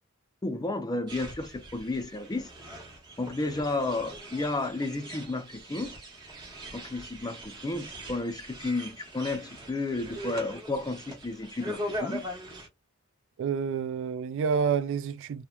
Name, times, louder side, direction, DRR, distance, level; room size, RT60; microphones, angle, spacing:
voice 1, 0.4-2.5 3.2-6.0 6.7-12.3, left 2 dB, 20° left, 0.4 m, -32 dB
sound 1, 1.1-12.7, right 1 dB, 20° right, 0.9 m, -41 dB
voice 2, 13.4-15.5, right 6 dB, 60° right, 0.3 m, -28 dB
2.9 x 2.2 x 2.3 m
head